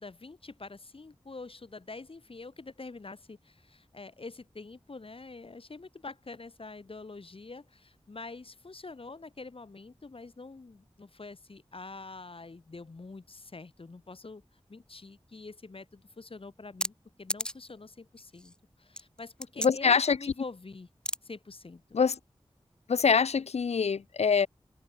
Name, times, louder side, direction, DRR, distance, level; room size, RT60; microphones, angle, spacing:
voice 1, 0.0-14.4 14.7-20.9 21.2-21.8, left 3 dB, 60° left, 1.5 m, -46 dB
sound 1, 16.8-16.9 17.3-17.7 18.2-18.6 19.0-19.7 21.1-21.2, equal, 10° left, 1.6 m, -32 dB
voice 2, 19.6-20.2 21.9-22.1 22.9-24.5, left 6 dB, 85° left, 0.5 m, -24 dB
wide cardioid pair, 70°, 11 cm